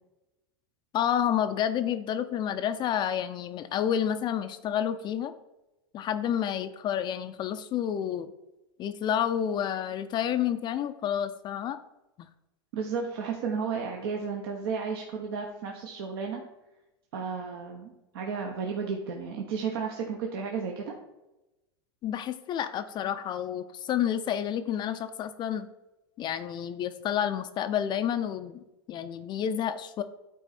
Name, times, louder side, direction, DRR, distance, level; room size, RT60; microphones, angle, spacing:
voice 1, 0.9-5.3 5.9-8.3 8.8-11.8 22.0-25.7 26.2-28.6 28.9-30.0, left 9 dB, 35° left, 9 dB, 0.4 m, -29 dB
voice 2, 12.7-16.4 17.1-20.9, right 5 dB, 65° right, 1 dB, 0.9 m, -33 dB
8.9 x 4.0 x 4.2 m, 0.98 s
hypercardioid pair, 95°, 14 cm